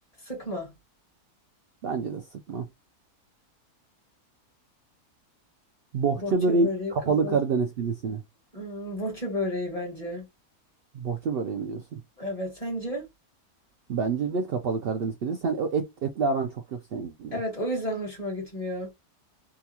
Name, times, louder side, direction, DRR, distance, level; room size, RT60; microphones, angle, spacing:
voice 1, 0.3-0.7 6.2-6.9 7.2-7.4 8.5-10.2 12.2-13.1 17.3-18.9, left 1 dB, 25° left, 1.9 m, -32 dB
voice 2, 1.8-2.7 5.9-8.2 10.9-12.0 13.9-17.4, right 4 dB, 80° right, 0.5 m, -27 dB
3.8 x 2.4 x 2.8 m
omnidirectional pair, 1.6 m